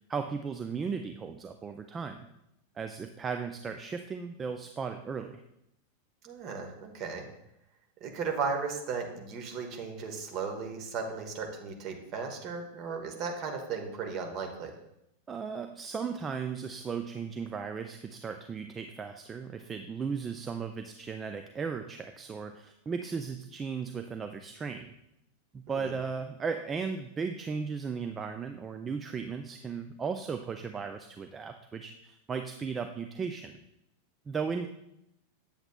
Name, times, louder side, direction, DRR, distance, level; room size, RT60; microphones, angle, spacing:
voice 1, 0.1-2.3 2.8-5.4 15.3-24.9 25.5-33.6 34.3-34.7, right 5 dB, 20° right, 7 dB, 0.4 m, -36 dB
voice 2, 6.2-7.2 8.0-14.8 25.7-25.9, right 5 dB, 40° right, 3 dB, 1.3 m, -36 dB
8.6 x 7.8 x 2.3 m, 0.82 s
figure-of-eight pair, 90°, 0 cm